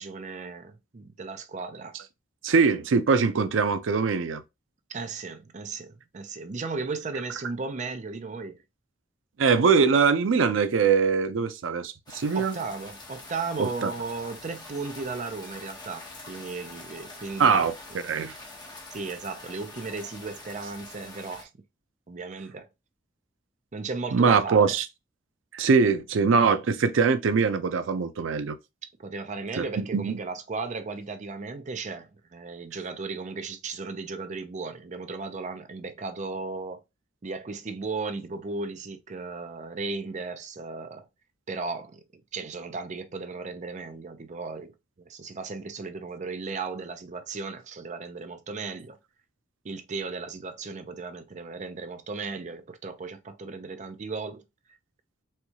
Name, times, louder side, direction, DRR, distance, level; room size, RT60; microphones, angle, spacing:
voice 1, 0.0-2.0 4.9-8.6 12.3-17.7 18.9-21.5 22.1-22.7 23.7-24.8 29.0-36.8 37.2-41.1 41.5-49.0 49.6-54.4, right 4 dB, 40° right, 0.5 m, -35 dB
voice 2, 2.4-4.4 9.4-12.5 13.6-13.9 17.4-17.7 18.0-18.3 24.1-24.9 25.5-28.6 29.6-30.1, right 5 dB, 90° right, 0.5 m, -22 dB
sound 1, 12.1-21.4, left 2 dB, 20° left, 1.0 m, -45 dB
4.3 x 2.3 x 2.8 m
head